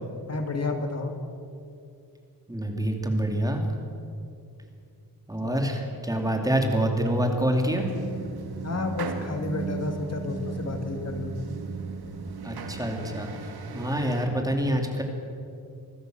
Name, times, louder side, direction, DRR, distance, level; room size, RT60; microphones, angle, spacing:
voice 1, 0.3-1.2 5.4-5.6 8.6-11.4, left 3 dB, 40° left, 5 dB, 2.0 m, -31 dB
voice 2, 2.5-3.6 5.3-7.8 12.4-13.3 13.7-15.0, right 1 dB, 10° right, 2 dB, 2.6 m, -26 dB
sound 1, 7.7-14.3, right 5 dB, 75° right, 2.2 m, -36 dB
25.0 x 15.5 x 7.8 m, 2.5 s
wide cardioid pair, 155°, 38 cm